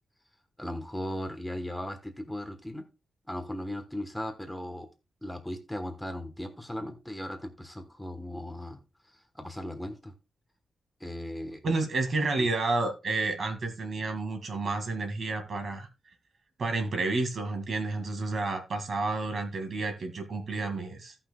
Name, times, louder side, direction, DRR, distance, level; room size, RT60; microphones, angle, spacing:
voice 1, 0.6-2.9 3.3-4.9 5.2-8.8 9.1-10.1 11.0-11.6, left 1 dB, 5° left, 1.2 m, -37 dB
voice 2, 11.6-15.9 16.6-21.2, right 3 dB, 55° right, 2.1 m, -30 dB
16.5 x 5.8 x 2.3 m
wide cardioid pair, 120°, 0 cm